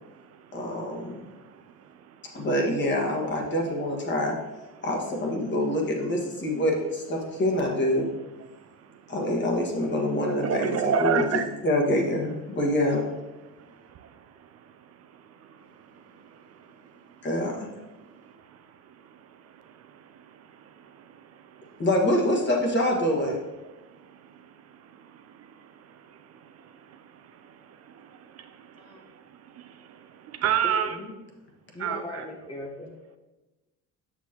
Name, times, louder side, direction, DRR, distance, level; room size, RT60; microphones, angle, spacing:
voice 1, 0.5-1.2 2.3-4.4 4.8-8.1 9.1-13.1 17.2-17.7 21.8-23.4, left 1 dB, 35° left, 0 dB, 1.5 m, -26 dB
voice 2, 10.4-11.5 13.9-14.1 15.4-15.7 16.2-16.7 19.9-20.0 20.4-21.8 23.3-23.4 24.9-25.5 25.8-29.2 29.6-31.0 31.8-32.3, right 8 dB, 50° right, 8 dB, 0.5 m, -32 dB
voice 3, 30.6-31.1 31.7-33.0, left 2 dB, 15° left, 0 dB, 0.7 m, -39 dB
7.3 x 6.0 x 2.9 m, 1.1 s
cardioid pair, 110°, 33 cm